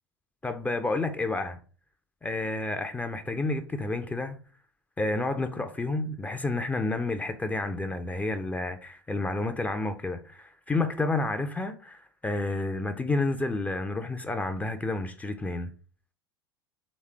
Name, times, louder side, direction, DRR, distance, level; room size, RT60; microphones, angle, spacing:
voice 1, 0.4-1.6 2.2-4.4 5.0-15.7, left 2 dB, 10° left, 0.4 m, -30 dB
3.3 x 3.1 x 3.3 m
figure-of-eight pair, 75°, 12 cm